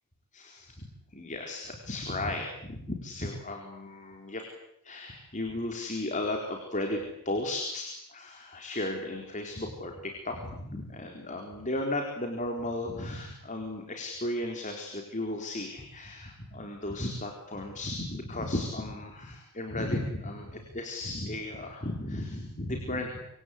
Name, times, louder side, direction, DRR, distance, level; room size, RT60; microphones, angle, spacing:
voice 1, 0.3-4.4 4.8-23.2, left 1 dB, 35° left, 2 dB, 4.2 m, -35 dB
27.0 x 26.0 x 8.5 m, 0.76 s
head